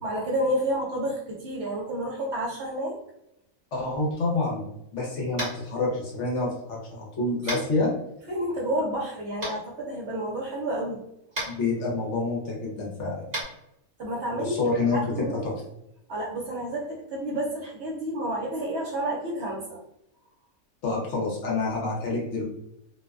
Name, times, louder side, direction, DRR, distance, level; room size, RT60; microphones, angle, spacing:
voice 1, 0.0-3.0 7.5-7.8 8.3-11.0 14.0-14.5 14.9-15.4 16.1-19.8, right 1 dB, 60° right, -2 dB, 0.8 m, -30 dB
voice 2, 3.7-4.7 4.9-7.9 11.5-13.4 14.3-15.5 20.8-22.4, left 3 dB, 60° left, -3 dB, 0.9 m, -28 dB
Tap, 5.3-5.6 7.5-7.6 9.4-9.5 11.3-11.5 13.3-13.4, right 1 dB, 30° right, 1.3 m, -31 dB
2.5 x 2.1 x 2.3 m, 0.80 s
omnidirectional pair, 1.5 m